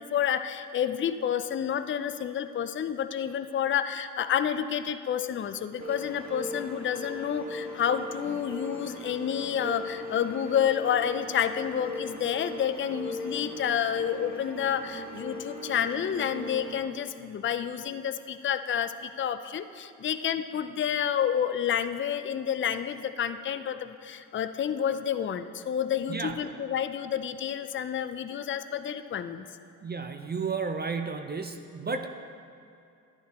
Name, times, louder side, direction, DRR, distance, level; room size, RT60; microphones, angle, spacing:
voice 1, 0.0-29.5, left 9 dB, 30° left, 11 dB, 0.5 m, -29 dB
sound 1, 5.8-16.8, left 1 dB, 40° right, 1.7 m, -39 dB
voice 2, 26.1-26.4 29.8-32.1, right 4 dB, 25° right, 6 dB, 0.6 m, -32 dB
11.0 x 9.9 x 3.0 m, 2.6 s
supercardioid pair, 55°, 40 cm